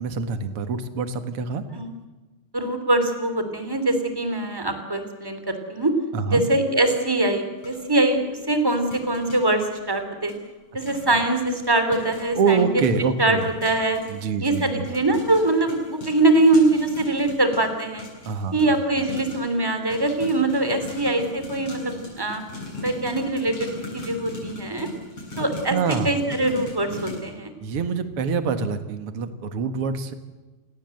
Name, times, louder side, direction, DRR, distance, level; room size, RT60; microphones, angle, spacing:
voice 1, 0.0-1.6 6.1-6.4 11.1-11.2 12.3-13.5 14.1-14.9 18.2-18.7 25.7-26.1 27.6-30.1, right 5 dB, 55° right, 10 dB, 1.6 m, -25 dB
voice 2, 2.5-5.9 6.3-8.2 8.5-10.3 10.7-12.7 13.2-14.0 14.4-18.0 18.5-22.4 22.8-24.9 25.4-25.8 26.0-27.5, right 2 dB, 5° right, 8 dB, 2.3 m, -23 dB
sound 1, 7.6-7.8 8.7-9.4 10.3-10.4 10.8-11.2 11.5-19.6 19.9-27.2, left 3 dB, 35° left, 8.4 m, -38 dB
28.5 x 18.0 x 7.9 m, 1.2 s
omnidirectional pair, 4.6 m